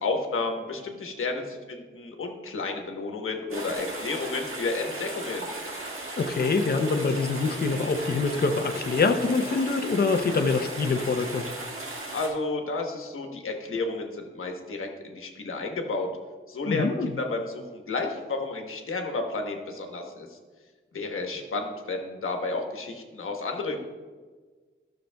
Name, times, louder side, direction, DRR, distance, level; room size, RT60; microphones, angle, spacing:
voice 1, 0.0-5.5 12.1-16.1 16.5-20.3 20.9-23.8, left 3 dB, 80° left, 3 dB, 1.1 m, -31 dB
sound 1, 3.5-12.3, right 2 dB, 90° right, 1.5 m, -36 dB
voice 2, 6.2-11.4 16.7-17.2, left 4 dB, 50° left, 6 dB, 0.6 m, -25 dB
13.0 x 6.5 x 2.3 m, 1.4 s
wide cardioid pair, 115°, 21 cm